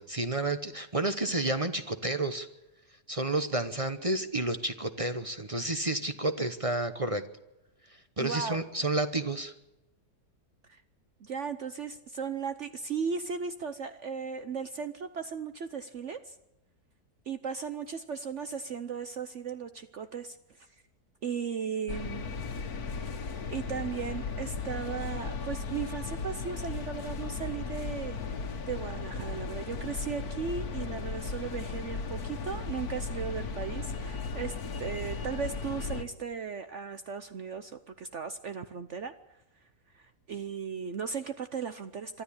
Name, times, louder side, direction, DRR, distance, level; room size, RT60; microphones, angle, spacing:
voice 1, 0.0-2.5 3.1-7.3 8.2-9.5, right 2 dB, 25° right, 10 dB, 0.9 m, -30 dB
voice 2, 8.2-8.6 10.7-10.8 11.2-16.4 17.3-20.7 21.2-22.3 23.2-28.4 28.7-39.1 39.9-42.2, right 6 dB, 55° right, 10 dB, 1.0 m, -36 dB
sound 1, 21.9-36.0, left 4 dB, 70° left, 1.9 m, -36 dB
24.5 x 13.0 x 8.6 m, 0.99 s
omnidirectional pair, 1.7 m